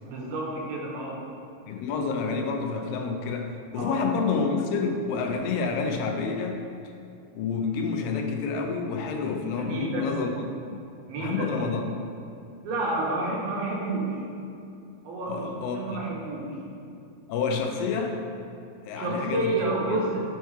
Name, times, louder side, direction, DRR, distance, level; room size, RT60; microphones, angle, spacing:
voice 1, 0.0-1.2 3.7-4.0 9.6-10.1 11.1-11.5 12.6-14.2 15.0-16.5 18.9-20.2, right 2 dB, 70° right, -3 dB, 3.1 m, -30 dB
voice 2, 1.7-6.6 7.3-10.4 10.7-10.8 11.2-11.8 15.3-16.0 17.3-18.2 18.8-19.5 19.9-20.0, left 5 dB, 85° left, 4 dB, 2.8 m, -28 dB
10.0 x 4.6 x 4.9 m, 2.6 s
omnidirectional pair, 4.5 m